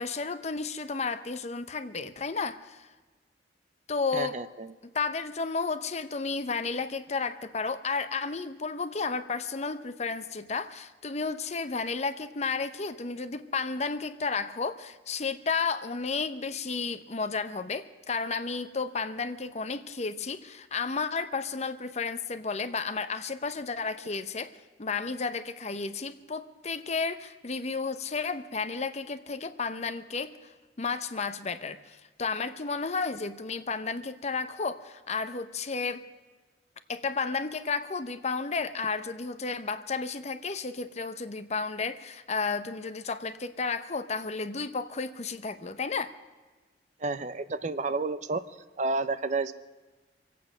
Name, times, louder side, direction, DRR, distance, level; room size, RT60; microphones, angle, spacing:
voice 1, 0.0-2.9 3.9-4.4 4.9-24.5 24.8-30.5 30.8-36.0 36.9-46.1, left 4 dB, 40° left, 11 dB, 0.8 m, -32 dB
voice 2, 4.1-4.7 47.0-48.4 48.8-49.5, right 3 dB, 45° right, 13 dB, 0.6 m, -30 dB
25.0 x 8.6 x 6.3 m, 1.3 s
head